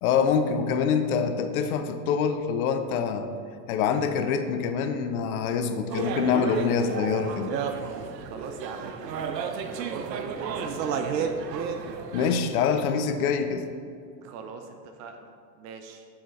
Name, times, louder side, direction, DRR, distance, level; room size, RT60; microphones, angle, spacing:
voice 1, 0.0-3.3 3.7-7.5 12.1-13.7, left 6 dB, 60° left, 8 dB, 0.7 m, -25 dB
sound 1, 5.9-12.4, right 6 dB, 90° right, 0.7 m, -32 dB
voice 2, 8.2-11.3 14.2-16.1, right 5 dB, 35° right, 5 dB, 0.5 m, -41 dB
7.7 x 4.4 x 3.8 m, 2.3 s
hypercardioid pair, 115°, 49 cm